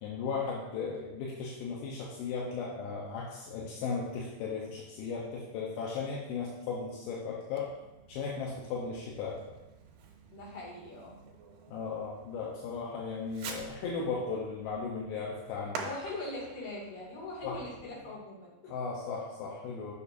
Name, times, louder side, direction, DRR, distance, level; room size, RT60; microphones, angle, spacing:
voice 1, 0.0-7.7 8.1-9.4 11.7-15.8 17.4-17.6 18.7-19.9, left 5 dB, 85° left, -4 dB, 2.7 m, -36 dB
Fireworks, 7.5-18.2, right 5 dB, 85° right, 2.8 m, -48 dB
voice 2, 10.3-11.2 15.8-18.7, left 2 dB, 60° left, -6 dB, 3.7 m, -41 dB
7.0 x 6.4 x 2.6 m, 1.0 s
omnidirectional pair, 4.4 m